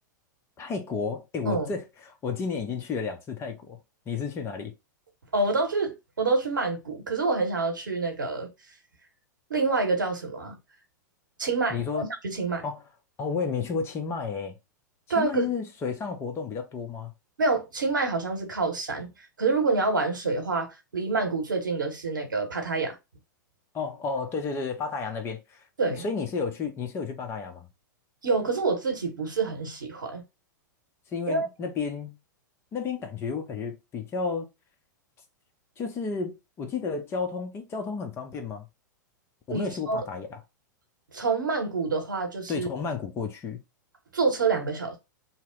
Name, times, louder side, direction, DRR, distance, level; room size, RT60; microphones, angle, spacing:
voice 1, 0.6-3.8 4.1-4.7 11.7-12.1 12.6-12.8 13.2-14.6 15.2-17.1 23.7-25.6 25.9-27.7 31.1-32.2 32.7-34.5 35.8-38.7 39.5-40.4 42.5-43.6, left 5 dB, 25° left, 0.6 m, -32 dB
voice 2, 5.3-8.5 9.5-10.6 11.4-12.6 15.1-15.5 17.4-19.1 19.4-23.0 25.8-26.0 28.2-30.2 31.3-31.5 39.5-40.0 41.1-42.7 44.1-45.0, right 3 dB, 80° right, 0.9 m, -27 dB
2.8 x 2.0 x 3.7 m
figure-of-eight pair, 100°, 10 cm